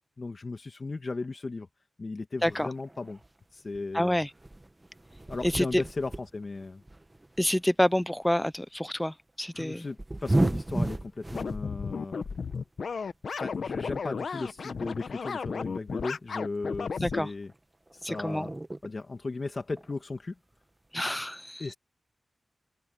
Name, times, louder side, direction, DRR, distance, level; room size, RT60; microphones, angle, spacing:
voice 1, 0.2-1.7 2.0-3.2 3.5-4.2 5.3-6.8 9.5-12.2 13.4-17.5 17.9-18.5 18.8-20.3 21.6-21.7, left 3 dB, 45° left, 1.8 m, -36 dB
sound 1, 2.5-3.4 3.7-8.0 8.3-8.5 9.6-11.6 12.0-12.6 13.7-13.8 14.1-14.2 14.7-14.8 15.1-16.4 17.5-17.6 17.9-19.0 19.6-20.0, right 1 dB, 20° right, 1.5 m, -33 dB
voice 2, 3.9-4.3 5.4-5.8 7.4-9.8 17.0-17.3 18.0-18.5 20.9-21.6, left 1 dB, 10° left, 0.7 m, -27 dB
sound 2, 11.3-17.2, left 5 dB, 80° left, 1.2 m, -34 dB
open air
wide cardioid pair, 75°, 0 cm